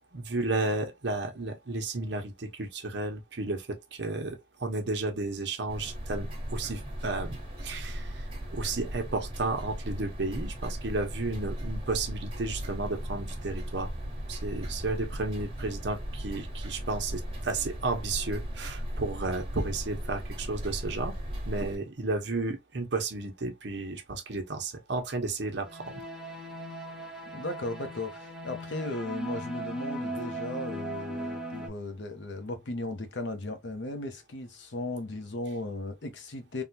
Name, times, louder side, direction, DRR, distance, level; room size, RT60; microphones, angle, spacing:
voice 1, 0.1-8.2 8.5-13.9 14.3-21.2 21.5-25.9, right 3 dB, 70° right, 0.9 m, -33 dB
sound 1, 5.7-21.7, equal, 30° right, 1.3 m, -37 dB
sound 2, 25.6-31.7, right 1 dB, 5° right, 0.8 m, -38 dB
voice 2, 27.3-36.6, left 2 dB, 75° left, 0.8 m, -36 dB
3.6 x 2.3 x 2.7 m
head